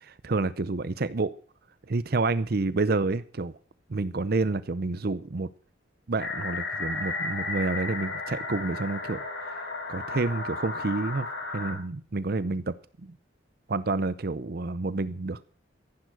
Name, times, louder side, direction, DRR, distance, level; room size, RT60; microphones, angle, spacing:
voice 1, 0.1-1.3 1.9-3.5 3.9-5.5 6.1-9.2 9.9-11.3 11.5-12.7 13.0-13.1 13.7-15.4, right 3 dB, 55° right, 16 dB, 0.6 m, -29 dB
sound 1, 6.2-11.7, left 3 dB, 70° left, 5.2 m, -34 dB
14.5 x 11.0 x 6.4 m, 0.43 s
head